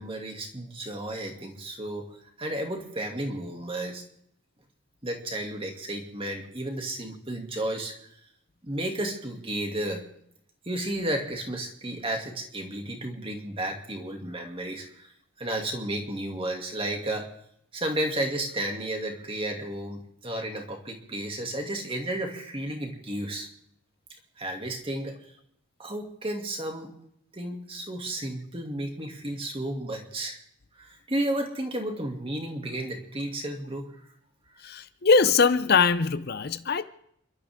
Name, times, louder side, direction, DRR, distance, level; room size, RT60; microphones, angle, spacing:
voice 1, 0.0-4.0 5.0-8.1 8.6-10.0 10.7-15.1 15.4-17.3 17.7-23.5 24.4-25.2 25.8-26.9 27.3-30.4 30.8-33.9, right 1 dB, 25° right, 2.5 m, -32 dB
voice 2, 34.6-36.8, left 5 dB, 50° left, 0.6 m, -22 dB
29.5 x 12.5 x 3.7 m
head